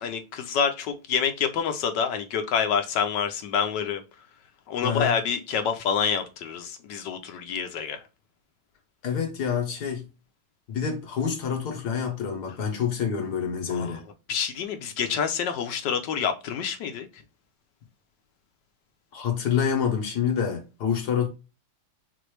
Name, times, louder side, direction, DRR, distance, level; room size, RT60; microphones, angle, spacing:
voice 1, 0.0-4.0 4.7-8.0 13.7-14.0 14.3-17.2, left 7 dB, 70° left, 1.1 m, -27 dB
voice 2, 4.8-5.2 9.0-10.0 10.7-14.0 19.1-21.3, left 7 dB, 55° left, 1.4 m, -27 dB
6.0 x 2.6 x 3.1 m
omnidirectional pair, 2.4 m